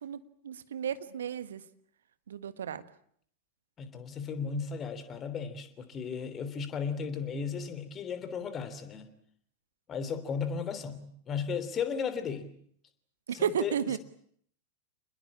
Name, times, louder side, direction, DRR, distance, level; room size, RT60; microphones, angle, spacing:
voice 1, 0.4-1.6 2.3-2.8 13.4-14.0, right 8 dB, 65° right, 13 dB, 1.5 m, -32 dB
voice 2, 3.8-9.1 9.9-12.5 13.3-14.0, left 6 dB, 25° left, 11 dB, 3.2 m, -35 dB
27.5 x 20.5 x 8.6 m, 0.66 s
figure-of-eight pair, 90°, 0 cm